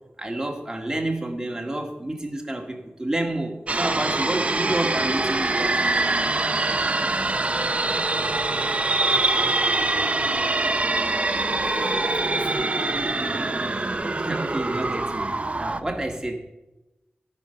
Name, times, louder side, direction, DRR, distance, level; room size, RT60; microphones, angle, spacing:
voice 1, 0.2-6.1 14.2-16.4, right 1 dB, 15° right, 2 dB, 2.0 m, -29 dB
sound 1, 3.7-15.8, right 2 dB, 35° right, 0.7 m, -24 dB
voice 2, 11.6-13.2, left 1 dB, 70° left, 1 dB, 3.0 m, -41 dB
15.5 x 6.7 x 5.7 m, 1.0 s
wide cardioid pair, 80°, 4 cm